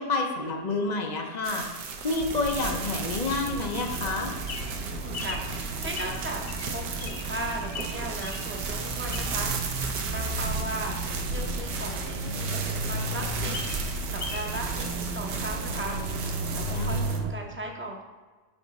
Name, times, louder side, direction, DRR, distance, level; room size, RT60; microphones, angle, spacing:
voice 1, 0.0-4.3 16.7-17.1, left 3 dB, 70° left, 3 dB, 0.4 m, -29 dB
sound 1, 1.4-17.2, right 5 dB, 90° right, 1.4 m, -36 dB
sound 2, 2.2-17.3, right 2 dB, 65° right, 0.6 m, -34 dB
Bird vocalization bird call bird song, 4.1-9.5 10.0-12.1 12.5-12.6 12.8-12.9 13.3-14.5 14.8-14.9, left 4 dB, 55° left, 0.9 m, -40 dB
voice 2, 4.8-6.4 6.7-13.6 14.1-16.0 16.5-18.0, right 1 dB, 15° right, 0 dB, 0.4 m, -37 dB
7.1 x 6.0 x 4.1 m, 1.3 s
omnidirectional pair, 1.8 m